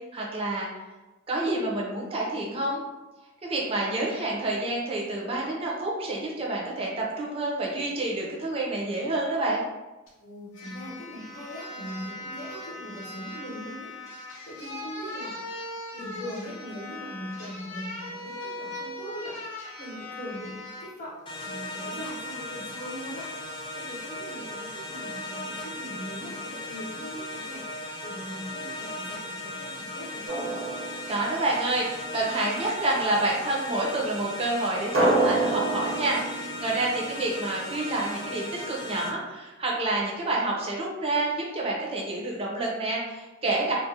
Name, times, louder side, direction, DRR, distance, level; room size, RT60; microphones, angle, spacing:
voice 1, 0.1-0.7 1.3-2.8 3.4-9.6 31.1-43.7, right 2 dB, 30° right, -3 dB, 0.6 m, -28 dB
sound 1, 10.1-10.2 10.5-20.9 21.4-21.6, left 2 dB, 85° left, 0.6 m, -39 dB
voice 2, 10.2-15.6 15.9-21.2 21.4-23.5 23.7-30.7 37.0-37.3, equal, 40° left, -6 dB, 0.8 m, -41 dB
sound 2, 21.3-39.1, left 1 dB, 25° left, 0.3 m, -37 dB
Drum, 30.3-31.8 34.9-37.7, right 2 dB, 85° right, 0.8 m, -28 dB
2.4 x 2.1 x 2.7 m, 1.1 s
head